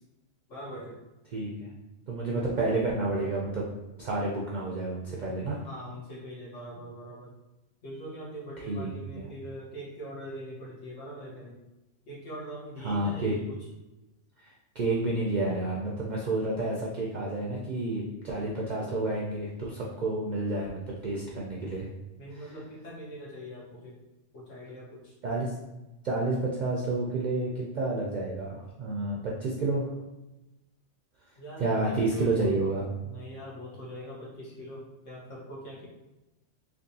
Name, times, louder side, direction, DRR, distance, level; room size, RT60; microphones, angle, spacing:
voice 1, 0.5-1.0 5.6-7.3 7.8-11.6 12.1-13.6 22.2-24.0 24.3-25.1 31.4-32.5 33.0-35.9, equal, 70° left, -4 dB, 1.4 m, -42 dB
voice 2, 1.3-1.7 2.1-3.6 4.0-5.6 8.7-8.9 9.1-9.3 12.8-13.3 14.4-21.9 25.2-25.5 26.0-29.9 31.6-32.8, right 2 dB, 65° right, -3 dB, 0.4 m, -30 dB
3.5 x 2.9 x 2.7 m, 1.0 s
omnidirectional pair, 1.3 m